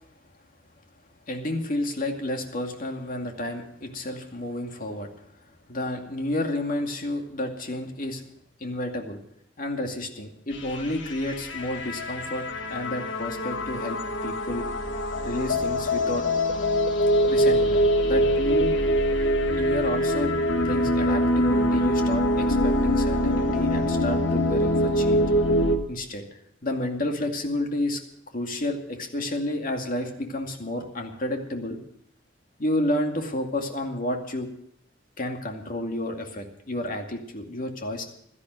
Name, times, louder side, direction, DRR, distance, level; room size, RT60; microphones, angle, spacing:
voice 1, 1.3-5.1 5.7-8.2 8.6-9.2 9.6-14.7 15.2-16.2 17.3-18.7 19.5-25.3 25.9-26.2 26.6-28.0 28.3-31.8 32.6-34.5 35.2-38.0, left 1 dB, 45° left, 3 dB, 2.3 m, -30 dB
sound 1, 10.5-25.8, equal, 75° left, 1.7 m, -24 dB
16.5 x 12.5 x 6.3 m, 0.71 s
head